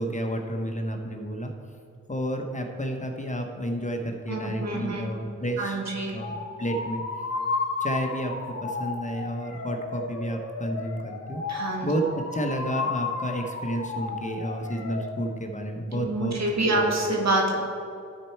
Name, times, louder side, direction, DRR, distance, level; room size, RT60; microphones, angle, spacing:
voice 1, 0.0-1.5 2.1-5.8 6.1-7.0 7.8-16.4 16.7-16.9, equal, 25° left, 3 dB, 0.8 m, -31 dB
voice 2, 4.3-5.1 5.6-6.2 11.5-11.9 15.9-17.6, right 2 dB, 60° right, -1 dB, 1.9 m, -26 dB
sound 1, 6.2-15.1, left 4 dB, 55° left, 1.5 m, -33 dB
12.5 x 4.5 x 4.5 m, 2.5 s
cardioid pair, 80°, 30 cm